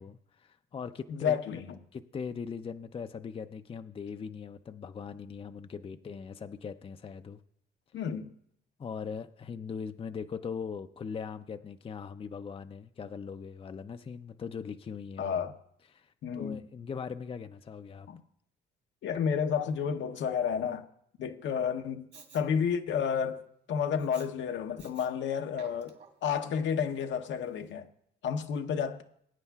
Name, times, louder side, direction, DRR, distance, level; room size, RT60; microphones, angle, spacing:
voice 1, 0.0-1.4 1.9-7.4 8.8-15.3 15.9-18.1, left 6 dB, 30° left, 0.5 m, -40 dB
voice 2, 1.1-1.8 7.9-8.3 15.2-15.5 16.2-16.6 18.1-18.2 19.0-20.9 21.2-22.1 22.3-23.4 23.7-27.9 28.2-29.0, left 7 dB, 70° left, 0.8 m, -31 dB
Respiratory sounds, 22.1-22.4 24.0-24.3 24.8-25.1 25.5-26.3 26.9-27.0, right 5 dB, 55° right, 2.2 m, -53 dB
21.5 x 9.1 x 2.3 m
cardioid pair, 90°, 20 cm